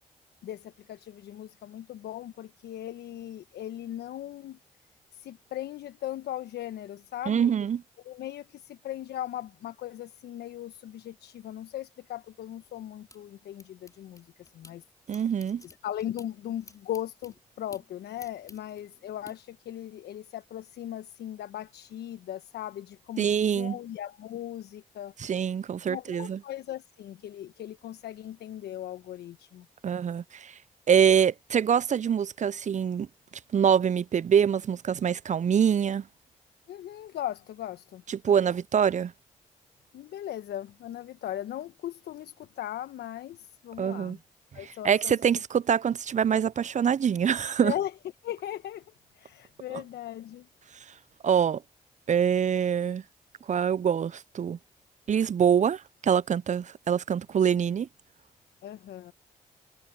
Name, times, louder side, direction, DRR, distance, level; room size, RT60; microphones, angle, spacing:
voice 1, 0.4-4.6 5.1-7.5 8.0-14.8 15.8-23.3 23.5-25.1 25.9-29.7 36.7-38.3 39.9-44.2 44.5-45.2 47.6-47.9 48.2-48.8 49.1-50.5 58.6-59.1, left 12 dB, 75° left, 1.2 m, -38 dB
voice 2, 7.3-7.8 15.1-15.6 23.2-23.8 25.2-26.4 29.8-30.5 30.9-33.1 33.5-36.0 38.1-39.1 43.8-44.2 44.6-47.7 51.2-51.6 52.1-53.0 53.5-54.6 55.1-57.9, right 8 dB, 45° right, 0.6 m, -25 dB
sound 1, 12.5-14.7 15.1-19.3, left 2 dB, 20° left, 3.4 m, -54 dB
hypercardioid pair, 40°, 17 cm